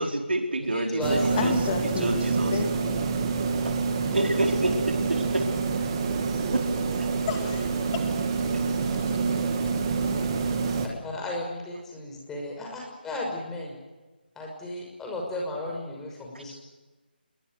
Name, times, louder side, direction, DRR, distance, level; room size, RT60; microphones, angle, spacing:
voice 1, 0.0-2.5 4.1-5.4 6.5-7.1 16.3-16.4, right 1 dB, 80° right, 3 dB, 4.6 m, -28 dB
voice 2, 0.6-1.4 7.1-7.3 10.8-13.8 14.4-16.5, left 2 dB, 5° left, -1 dB, 5.9 m, -34 dB
sound 1, 1.0-10.9, right 4 dB, 30° right, 2.9 m, -27 dB
voice 3, 1.4-2.2 2.4-3.0 7.3-8.2 8.9-9.1, left 6 dB, 25° left, 5 dB, 2.2 m, -32 dB
28.0 x 22.0 x 6.6 m, 1.2 s
figure-of-eight pair, 160°, 6 cm